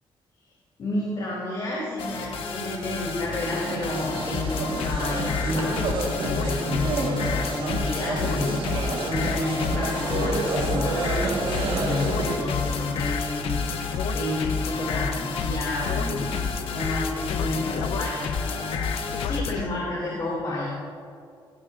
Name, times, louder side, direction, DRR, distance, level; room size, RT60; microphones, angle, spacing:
voice 1, 0.8-8.7 9.1-11.1 11.8-13.6 14.1-16.4 16.7-18.8 19.2-20.7, left 2 dB, 45° left, -5 dB, 2.5 m, -30 dB
sound 1, 2.0-19.4, left 4 dB, 65° left, 1.2 m, -34 dB
sound 2, 3.3-12.5, right 4 dB, 65° right, 1.3 m, -30 dB
sound 3, 4.3-19.7, left 5 dB, 85° left, 0.7 m, -30 dB
16.5 x 14.5 x 2.5 m, 2.3 s
wide cardioid pair, 175°, 10 cm